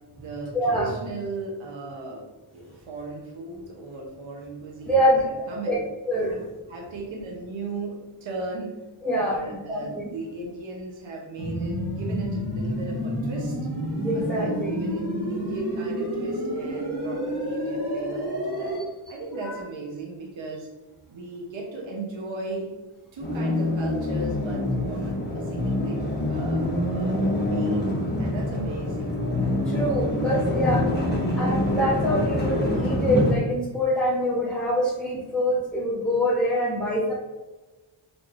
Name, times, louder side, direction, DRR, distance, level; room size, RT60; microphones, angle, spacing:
voice 1, 0.0-2.3 2.5-5.8 6.3-13.6 14.1-15.0 15.3-18.8 19.1-20.7 21.1-22.7 23.1-27.9 28.2-29.2, right 2 dB, 70° right, -1 dB, 0.7 m, -37 dB
voice 2, 0.5-0.9 4.9-5.2 5.7-5.8 6.1-6.4 9.0-9.4 9.7-10.0 13.9-14.8 19.4-19.5 29.7-30.8 31.4-37.1, equal, ahead, -4 dB, 0.7 m, -24 dB
sound 1, 11.4-18.8, equal, 50° right, 1.1 m, -29 dB
sound 2, 23.2-33.3, left 1 dB, 20° left, 1.0 m, -25 dB
4.1 x 3.2 x 2.4 m, 1.2 s
wide cardioid pair, 135°, 48 cm